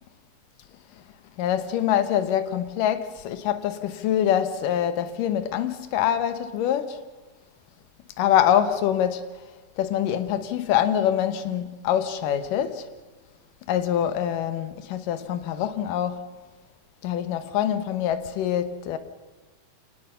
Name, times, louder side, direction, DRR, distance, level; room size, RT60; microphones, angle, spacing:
voice 1, 1.4-7.0 8.2-9.3 9.8-12.9 13.7-16.3 17.0-19.0, left 10 dB, 75° left, 2.6 m, -25 dB
27.0 x 19.5 x 5.6 m
omnidirectional pair, 3.9 m